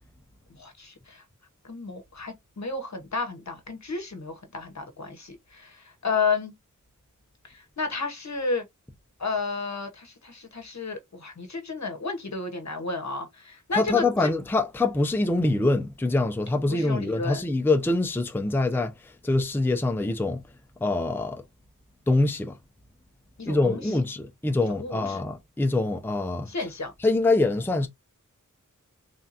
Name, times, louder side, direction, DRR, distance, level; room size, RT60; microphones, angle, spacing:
voice 1, 0.6-1.2 1.6-6.5 7.4-8.6 9.2-14.3 16.7-17.4 23.4-23.9 24.8-25.2 26.5-26.9, left 4 dB, 60° left, 0.9 m, -32 dB
voice 2, 13.7-18.9 19.2-20.4 20.8-21.4 22.1-22.5 23.5-26.5 27.0-27.9, left 2 dB, 5° left, 0.5 m, -24 dB
3.4 x 2.8 x 2.5 m
wide cardioid pair, 70°, 32 cm